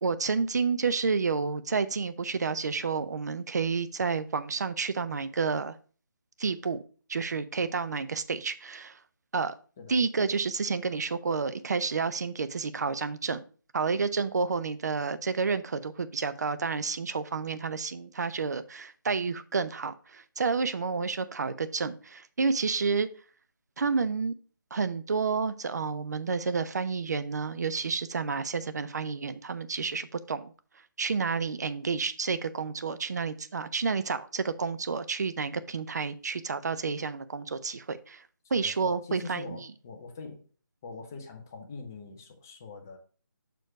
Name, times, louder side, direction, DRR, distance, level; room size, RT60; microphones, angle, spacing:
voice 1, 0.0-5.8 6.4-6.8 7.1-9.0 9.3-9.6 9.9-13.4 13.7-23.1 23.8-24.3 24.7-30.5 31.0-38.2 38.5-39.6, right 5 dB, 50° right, 0.5 m, -30 dB
voice 2, 38.4-40.4 40.8-43.0, left 4 dB, 10° left, 0.3 m, -43 dB
6.1 x 4.6 x 4.6 m
figure-of-eight pair, 165°, 11 cm